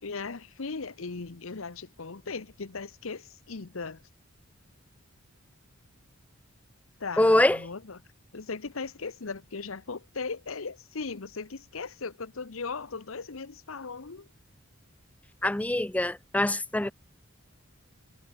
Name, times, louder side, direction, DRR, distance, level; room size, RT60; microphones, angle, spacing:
voice 1, 0.0-4.0 7.0-8.0 8.3-14.3, left 4 dB, 70° left, 1.0 m, -38 dB
voice 2, 7.2-7.6 15.4-16.9, left 1 dB, 5° left, 0.5 m, -24 dB
head